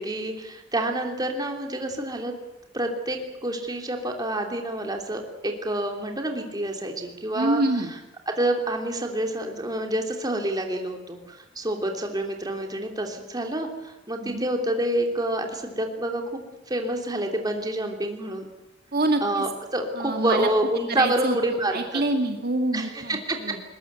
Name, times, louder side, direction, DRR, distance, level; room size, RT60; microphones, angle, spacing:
voice 1, 0.0-2.3 2.7-7.6 8.3-16.4 16.7-18.4 19.2-22.0 22.7-23.6, right 1 dB, 20° right, 3 dB, 3.1 m, -28 dB
voice 2, 7.3-7.9 14.2-14.5 18.9-19.4 19.9-20.5 20.9-21.4 21.7-23.6, right 2 dB, 50° right, 4 dB, 2.0 m, -26 dB
21.0 x 21.0 x 8.3 m, 0.94 s
head